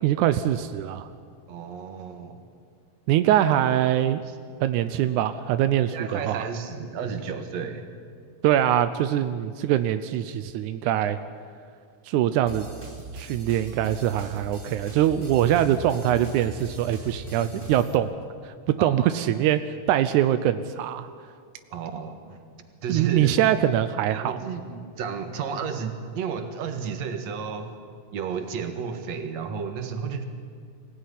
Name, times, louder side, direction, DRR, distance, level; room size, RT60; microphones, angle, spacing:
voice 1, 0.0-1.1 3.1-4.2 4.6-6.4 8.4-11.2 12.1-12.7 13.1-18.2 18.5-19.6 19.9-21.1 22.9-24.4, right 11 dB, 90° right, 11 dB, 2.2 m, -23 dB
voice 2, 1.5-2.4 4.3-4.4 5.9-7.9 18.8-19.1 21.7-22.4 22.8-23.4 24.1-27.7 28.1-30.2, right 6 dB, 65° right, 7 dB, 2.7 m, -32 dB
sound 1, 12.5-18.0, right 1 dB, 20° right, 1.8 m, -39 dB
24.0 x 17.0 x 9.9 m, 2.2 s
omnidirectional pair, 3.4 m